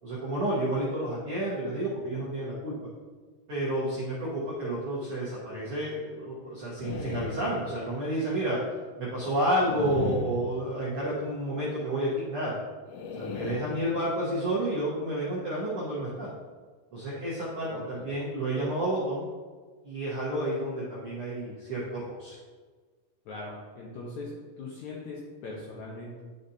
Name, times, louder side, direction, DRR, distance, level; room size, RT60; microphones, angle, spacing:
voice 1, 0.0-2.9 3.5-8.6 9.0-12.6 13.1-16.3 16.9-19.2 19.8-22.4, right 1 dB, 70° right, -7 dB, 1.3 m, -30 dB
sound 1, 6.8-8.2 9.6-11.1 12.9-14.4, left 2 dB, 90° left, 2.8 m, -37 dB
voice 2, 17.7-18.1 23.3-26.2, left 2 dB, 70° left, -4 dB, 1.8 m, -40 dB
10.0 x 5.1 x 2.8 m, 1.5 s
omnidirectional pair, 4.4 m